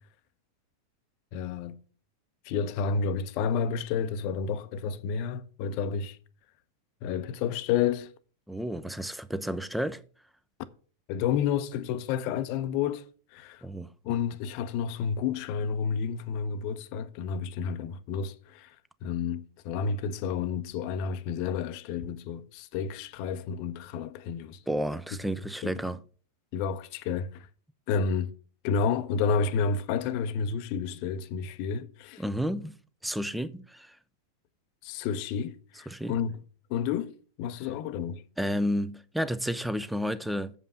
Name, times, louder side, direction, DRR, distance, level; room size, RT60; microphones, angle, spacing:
voice 1, 1.3-1.8 2.4-6.2 7.0-8.1 11.1-13.0 13.3-13.6 14.0-18.8 19.0-24.6 25.6-25.8 26.5-27.5 27.9-28.3 28.6-32.2 34.8-36.3 36.7-38.2, left 6 dB, 45° left, 0.7 m, -30 dB
voice 2, 8.5-10.0 13.6-13.9 24.7-26.0 32.2-32.7 33.0-34.0 35.9-36.2 38.4-40.5, equal, ahead, 0.6 m, -31 dB
7.4 x 5.4 x 6.9 m
figure-of-eight pair, 95°, 0 cm